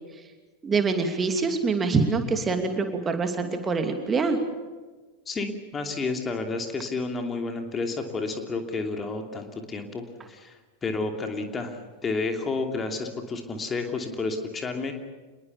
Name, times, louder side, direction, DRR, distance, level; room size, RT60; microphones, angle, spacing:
voice 1, 0.6-4.4, right 4 dB, 20° right, 6 dB, 2.8 m, -25 dB
voice 2, 5.3-14.9, left 3 dB, 20° left, 5 dB, 2.9 m, -31 dB
27.5 x 21.5 x 7.0 m, 1.3 s
figure-of-eight pair, 90°, 0 cm